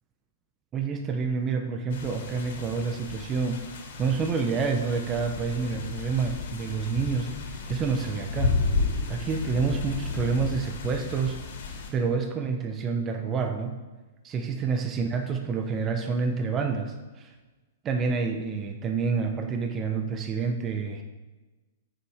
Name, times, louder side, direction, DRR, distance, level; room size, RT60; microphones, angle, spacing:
voice 1, 0.7-3.6 4.0-8.6 9.1-11.4 11.9-13.8 14.2-17.3 17.8-21.0, right 5 dB, 25° right, 5 dB, 0.9 m, -28 dB
sound 1, 1.9-11.9, left 4 dB, 65° left, 2.5 m, -33 dB
14.0 x 7.1 x 3.6 m, 1.2 s
hypercardioid pair, 140°, 0 cm